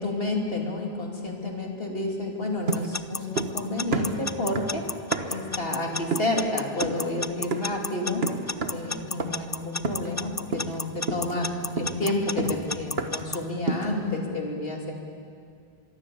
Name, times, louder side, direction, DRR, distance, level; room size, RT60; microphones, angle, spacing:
voice 1, 0.0-4.9 5.3-8.3 8.7-14.9, left 2 dB, 65° left, 0 dB, 3.3 m, -30 dB
Alarm / Clock, 2.7-13.4, left 3 dB, 25° left, 0.4 m, -31 dB
sound 1, 2.7-3.6 3.9-5.5 6.1-6.4 6.8-7.1 7.5-7.8 8.2-8.9 9.2-9.5 9.8-10.2 10.5-10.8 11.1-13.3 13.7-14.0, right 4 dB, 75° right, 1.7 m, -31 dB
24.5 x 22.5 x 7.1 m, 2.2 s
omnidirectional pair, 1.0 m